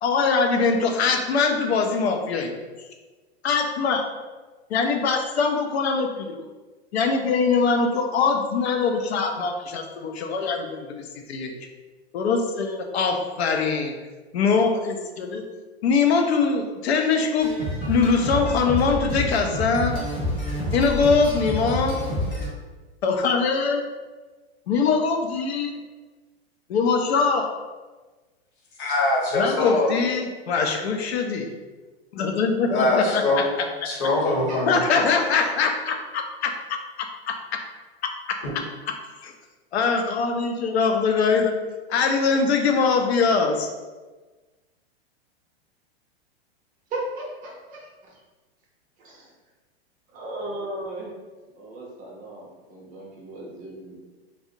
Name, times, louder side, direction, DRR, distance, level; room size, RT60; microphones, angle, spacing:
voice 1, 0.0-2.5 3.4-4.0 4.7-6.4 6.9-11.5 12.1-13.9 14.3-15.4 15.8-17.5 17.9-20.0 20.7-22.0 23.0-23.8 24.7-25.7 26.7-27.5 29.4-31.5 32.1-33.5 34.7-37.3 39.2-39.3 39.7-41.6 41.9-43.7, left 5 dB, 80° left, 4 dB, 0.5 m, -22 dB
sound 1, 17.4-22.5, equal, 20° left, 0.6 m, -28 dB
voice 2, 28.8-29.9 32.6-33.5 33.8-34.8 38.4-38.5, left 2 dB, 50° left, -3 dB, 0.9 m, -23 dB
voice 3, 34.5-35.0 46.9-48.2 49.0-49.3 50.1-51.1 51.5-54.0, right 1 dB, 25° right, -2 dB, 0.5 m, -36 dB
2.4 x 2.0 x 2.7 m, 1.3 s
hypercardioid pair, 120°, 32 cm